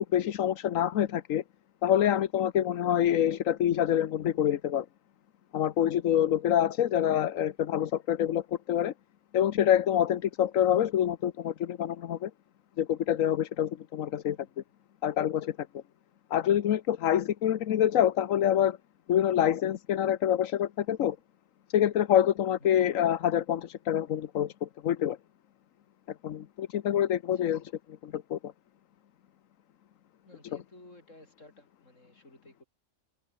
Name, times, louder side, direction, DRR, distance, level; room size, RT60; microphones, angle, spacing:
voice 1, 0.1-1.4 1.8-4.9 5.5-8.9 9.3-12.3 12.8-14.4 15.0-15.8 16.3-18.8 19.1-21.2 21.7-25.2 26.2-27.6 28.0-28.5, left 10 dB, 85° left, 1.3 m, -26 dB
voice 2, 22.6-23.0 27.3-27.5 30.3-32.6, left 1 dB, 70° left, 8.2 m, -55 dB
omnidirectional pair, 1.3 m